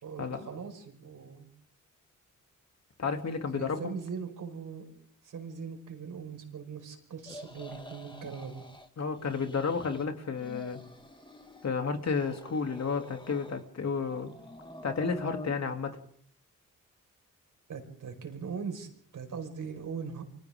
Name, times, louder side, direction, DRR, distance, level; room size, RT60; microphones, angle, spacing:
voice 1, 0.0-1.5 3.5-4.9 5.2-8.6 17.7-20.2, right 6 dB, 75° right, 4 dB, 5.3 m, -40 dB
voice 2, 3.0-3.9 9.0-10.8 11.6-14.3 14.8-15.9, left 5 dB, 55° left, 4 dB, 3.0 m, -32 dB
sound 1, 7.2-8.9 9.2-10.0 10.3-11.7 12.0-13.7 14.0-15.5, left 1 dB, 15° left, 2.1 m, -47 dB
29.0 x 25.0 x 3.8 m, 0.63 s
cardioid pair, 75°, 31 cm